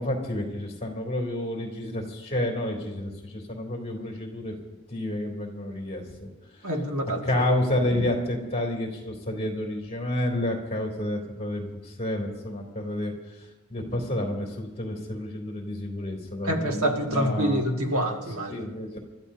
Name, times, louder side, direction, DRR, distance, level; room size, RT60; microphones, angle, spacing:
voice 1, 0.0-4.5 4.9-6.3 6.6-6.7 7.1-17.6 18.5-19.0, left 1 dB, 30° left, 0 dB, 3.2 m, -30 dB
voice 2, 6.6-7.4 16.4-18.6, right 1 dB, 70° right, 2 dB, 2.0 m, -27 dB
29.5 x 14.0 x 2.8 m, 1.1 s
head